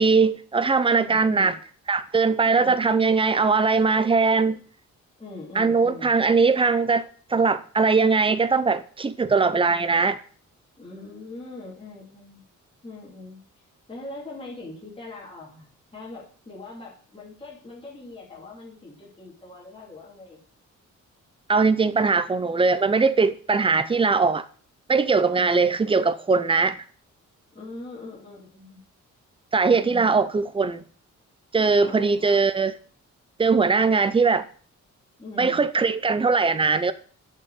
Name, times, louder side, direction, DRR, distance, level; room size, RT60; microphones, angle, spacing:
voice 1, 0.0-1.5 1.9-4.6 5.6-10.2 21.5-24.4 24.9-26.8 29.5-30.8 31.5-32.7 33.4-34.5 35.4-36.9, right 4 dB, 20° right, 0.5 m, -21 dB
voice 2, 1.0-1.6 2.4-2.7 5.2-6.1 9.7-10.0 10.8-12.4 12.8-13.4 13.9-20.4 25.3-25.6 27.5-28.8 29.8-30.2 31.8-32.4 35.2-35.6, left 2 dB, 20° left, 2.8 m, -41 dB
6.7 x 5.9 x 7.0 m
wide cardioid pair, 165°, 30 cm